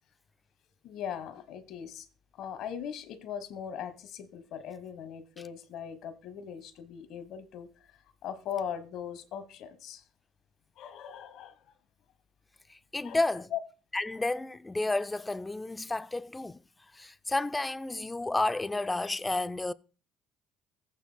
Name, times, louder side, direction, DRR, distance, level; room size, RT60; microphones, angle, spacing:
voice 1, 0.8-2.1 2.4-7.7 8.2-10.0 10.8-11.5 13.0-13.2 13.5-13.6, left 8 dB, 65° left, 1.3 m, -39 dB
voice 2, 12.7-13.5 13.9-16.6 16.9-19.7, left 2 dB, 15° left, 0.5 m, -31 dB
15.0 x 8.4 x 2.2 m
supercardioid pair, 75°, 0 cm